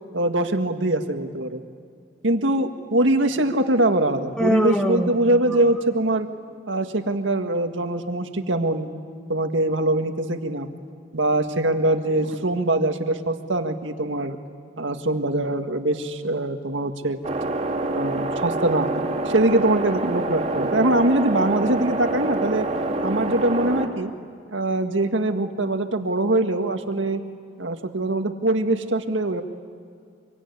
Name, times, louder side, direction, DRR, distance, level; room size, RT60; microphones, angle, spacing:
voice 1, 0.1-1.6 2.2-6.3 6.7-8.9 9.3-10.7 11.1-14.4 14.8-17.2 17.9-18.9 19.3-22.7 23.0-24.1 24.5-27.2 27.6-29.4, right 1 dB, 85° right, 6 dB, 1.8 m, -23 dB
Human voice, 4.4-6.1, equal, 5° left, 1.2 m, -25 dB
sound 1, 17.2-23.9, right 2 dB, 35° right, 2.4 m, -26 dB
25.5 x 24.0 x 9.7 m, 2.3 s
head